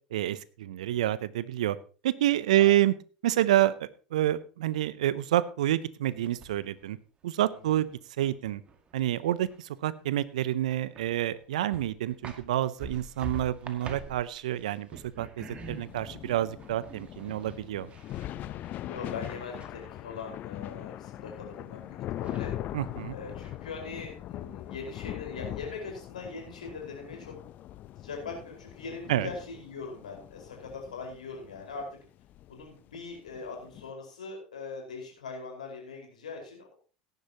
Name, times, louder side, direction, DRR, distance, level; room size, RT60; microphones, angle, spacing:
voice 1, 0.1-1.8 2.0-2.9 3.2-7.0 7.2-7.9 8.2-8.6 8.9-17.9 22.7-23.2 29.1-29.3, right 13 dB, 70° right, 18 dB, 0.6 m, -28 dB
sound 1, 6.1-6.8 7.2-9.8 10.1-10.2 10.6-11.4 11.7-20.3 21.8-21.9 22.2-23.0 23.4-24.1, right 4 dB, 30° right, 2.1 m, -47 dB
sound 2, 15.4-33.9, left 13 dB, 45° left, 0.6 m, -41 dB
voice 2, 17.6-17.9 18.9-22.5 23.1-27.3 28.0-31.9 32.5-36.7, left 4 dB, 80° left, 1 dB, 4.8 m, -41 dB
17.0 x 10.5 x 2.9 m, 0.37 s
figure-of-eight pair, 75°, 4 cm